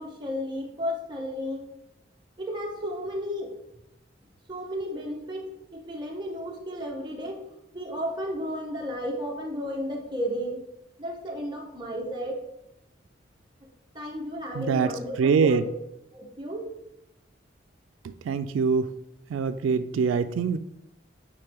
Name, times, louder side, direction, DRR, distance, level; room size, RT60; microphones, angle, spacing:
voice 1, 0.0-1.6 2.4-3.5 4.5-7.4 7.7-10.6 11.0-12.4 13.9-15.7 16.1-16.7, equal, 25° right, -1 dB, 1.0 m, -33 dB
voice 2, 14.6-14.9 15.2-15.6 18.0-18.9 19.3-20.6, right 5 dB, 90° right, 12 dB, 0.3 m, -24 dB
9.0 x 3.2 x 3.4 m, 0.86 s
head